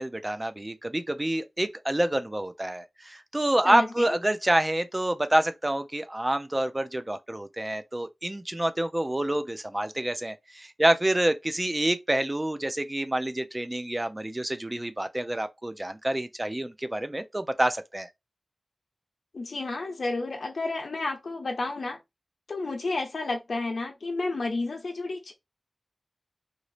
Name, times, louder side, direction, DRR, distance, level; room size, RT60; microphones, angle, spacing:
voice 1, 0.0-18.1, right 1 dB, 20° right, 0.5 m, -27 dB
voice 2, 3.6-4.2 19.3-22.0 22.5-25.3, left 3 dB, 80° left, 0.7 m, -31 dB
2.9 x 2.6 x 3.2 m
wide cardioid pair, 75°, 0 cm